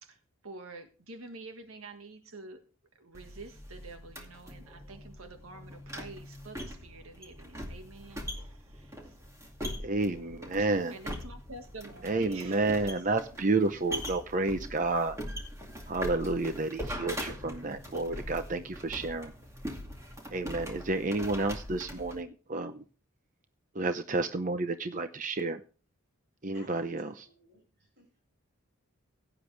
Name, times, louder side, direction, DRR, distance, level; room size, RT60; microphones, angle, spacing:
voice 1, 0.0-2.6 2.9-9.2 10.6-13.0, right 2 dB, 85° right, 1.7 m, -48 dB
sound 1, 3.1-22.2, equal, 15° right, 2.3 m, -42 dB
voice 2, 9.8-10.9 12.0-15.2 15.9-19.3 20.3-22.8 23.7-25.6 26.4-27.3, right 3 dB, 35° right, 0.7 m, -30 dB
voice 3, 26.5-28.2, equal, 55° right, 7.0 m, -58 dB
16.5 x 9.9 x 3.3 m
head